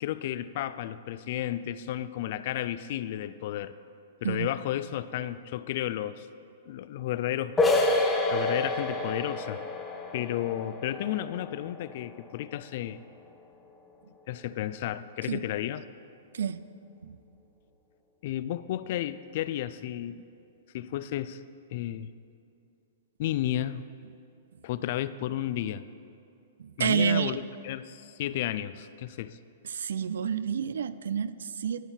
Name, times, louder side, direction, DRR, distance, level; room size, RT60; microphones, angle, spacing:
voice 1, 0.0-3.7 4.2-6.3 6.7-7.6 8.3-9.6 10.1-13.0 14.3-15.8 18.2-20.2 20.7-21.4 21.7-22.1 23.2-23.9 24.6-25.8 26.8-29.4, left 12 dB, 50° left, 15 dB, 0.3 m, -32 dB
sound 1, 7.6-13.1, left 2 dB, 10° left, 0.8 m, -29 dB
voice 2, 16.3-16.6 17.0-17.2 26.6-27.4 29.6-31.9, right 7 dB, 85° right, 15 dB, 0.4 m, -29 dB
12.5 x 4.5 x 7.2 m, 2.6 s
hypercardioid pair, 155°, 0 cm